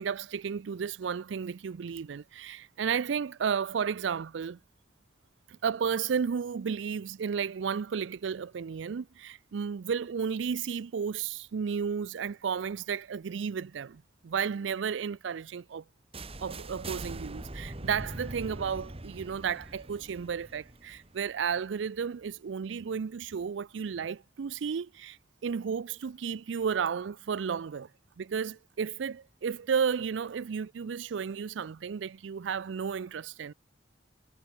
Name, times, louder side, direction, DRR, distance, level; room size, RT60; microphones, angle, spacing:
voice 1, 0.0-4.6 5.5-15.8 16.4-25.2 25.4-27.9 28.2-33.5, right 6 dB, 85° right, 0.4 m, -33 dB
sound 1, 16.1-22.0, right 2 dB, 30° right, 1.8 m, -42 dB
head